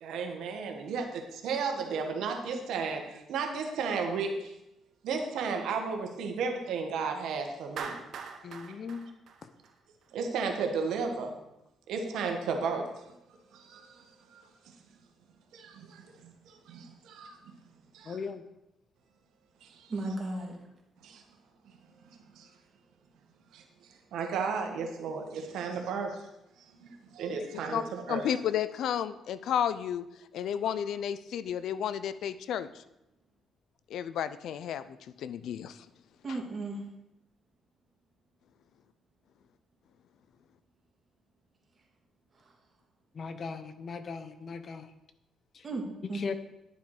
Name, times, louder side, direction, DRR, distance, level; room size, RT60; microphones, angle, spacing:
voice 1, 0.0-4.5 5.0-7.9 10.1-11.4 11.9-12.9 13.5-14.4 15.5-17.4 17.9-18.2 19.6-19.9 21.0-21.2 22.4-22.5 23.5-26.2 26.8-28.2 30.6-30.7, right 5 dB, 80° right, 4 dB, 1.7 m, -34 dB
Clapping, 7.8-10.1, right 6 dB, 65° right, 1.1 m, -42 dB
voice 2, 8.4-9.1 18.1-18.4 43.1-44.9 45.5-45.6 46.1-46.4, left 5 dB, 50° left, 11 dB, 0.8 m, -38 dB
voice 3, 19.9-20.7 36.2-36.8 42.3-42.5 45.6-46.4, right 2 dB, 40° right, 0 dB, 2.8 m, -35 dB
voice 4, 28.1-30.1 30.3-32.7 33.9-34.8 35.2-35.8, left 9 dB, 75° left, 14 dB, 0.5 m, -32 dB
11.5 x 7.0 x 5.0 m, 0.89 s
cardioid pair, 90°, 0 cm